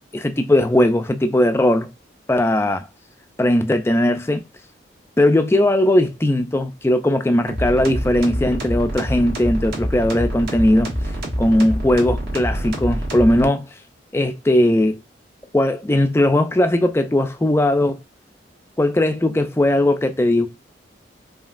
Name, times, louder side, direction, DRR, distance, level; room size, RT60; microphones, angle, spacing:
voice 1, 0.1-1.9 2.3-2.9 3.4-4.4 5.2-11.0 11.4-13.7 14.1-15.0 15.5-18.0 18.8-20.5, left 1 dB, 15° left, 0.4 m, -18 dB
sound 1, 7.5-13.5, equal, 60° right, 1.5 m, -26 dB
5.1 x 2.8 x 2.4 m
head